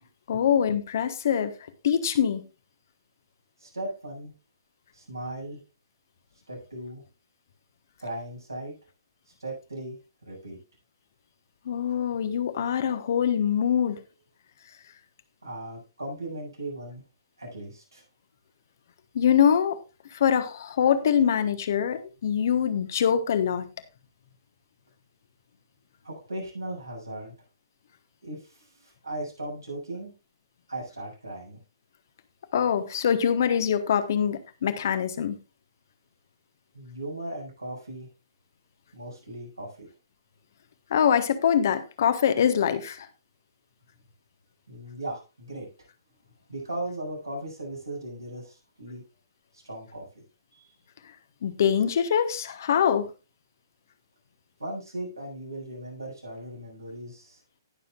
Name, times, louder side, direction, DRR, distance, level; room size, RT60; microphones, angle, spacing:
voice 1, 0.3-1.5 1.8-2.4 11.6-14.0 19.1-19.8 20.1-23.7 32.5-35.4 40.9-43.1 51.4-53.1, left 8 dB, 50° left, 1.2 m, -24 dB
voice 2, 3.6-4.3 4.9-5.6 6.5-7.0 8.0-8.7 9.4-10.0 10.2-10.6 15.4-17.0 17.4-18.0 26.0-27.3 28.2-30.1 30.7-31.6 36.7-38.1 38.9-39.9 44.7-45.7 46.5-49.0 49.5-50.2 50.5-50.7 54.6-57.4, right 1 dB, 80° right, 7.4 m, -37 dB
18.5 x 7.0 x 2.5 m
figure-of-eight pair, 125°, 2 cm